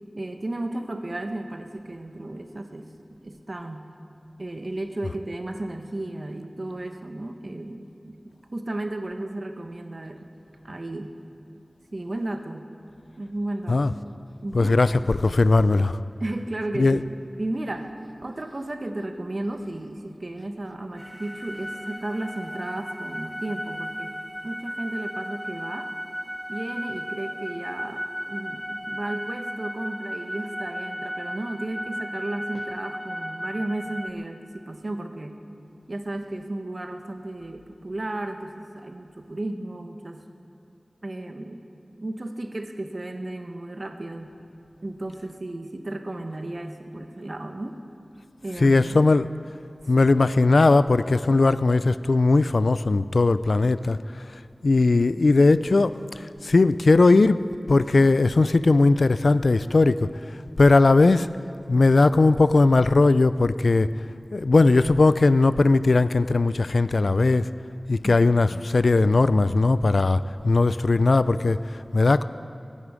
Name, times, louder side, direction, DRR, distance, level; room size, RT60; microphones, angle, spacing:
voice 1, 0.1-2.9 3.2-3.9 4.4-8.2 8.5-10.3 10.6-11.2 11.9-12.7 13.2-13.9 14.4-14.8 16.2-17.9 18.2-24.2 24.4-25.9 26.5-35.3 35.9-40.2 41.0-41.6 42.0-44.3 44.8-47.8 48.4-49.0 50.0-50.1, right 1 dB, 50° right, 6 dB, 1.1 m, -34 dB
voice 2, 14.5-16.0 16.7-17.0 48.6-49.3 49.9-54.0 54.6-60.1 60.6-61.3 61.7-63.9 64.3-67.5 67.9-72.2, left 3 dB, 80° left, 15 dB, 0.4 m, -19 dB
sound 1, 21.0-34.1, equal, ahead, 0.7 m, -35 dB
23.0 x 11.0 x 5.0 m, 2.5 s
wide cardioid pair, 55°, 0 cm